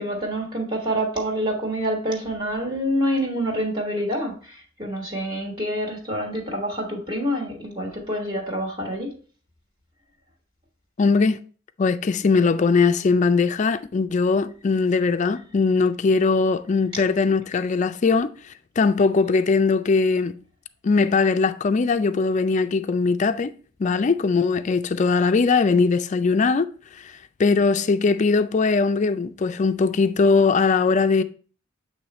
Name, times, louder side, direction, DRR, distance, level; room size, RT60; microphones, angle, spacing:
voice 1, 0.0-9.1, equal, 25° right, 1.4 m, -27 dB
voice 2, 11.0-11.4 11.8-18.3 18.8-20.3 20.8-23.5 23.8-26.7 27.4-31.2, left 4 dB, 40° left, 0.4 m, -20 dB
7.9 x 3.2 x 4.1 m
head